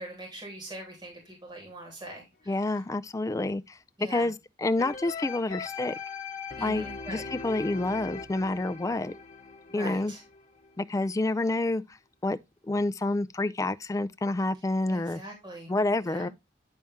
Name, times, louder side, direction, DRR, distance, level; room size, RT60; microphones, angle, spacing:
voice 1, 0.0-2.5 4.0-4.3 6.6-7.2 9.7-10.2 14.9-15.7 16.0-16.3, right 1 dB, 25° right, 3.4 m, -42 dB
voice 2, 2.5-3.8 4.1-5.9 6.6-9.1 9.7-10.1 10.8-11.8 12.2-12.4 12.7-15.2 15.7-16.3, left 2 dB, 20° left, 0.4 m, -28 dB
sound 1, 4.8-10.8 11.3-11.4, left 5 dB, 45° left, 1.1 m, -40 dB
9.8 x 4.2 x 3.5 m
head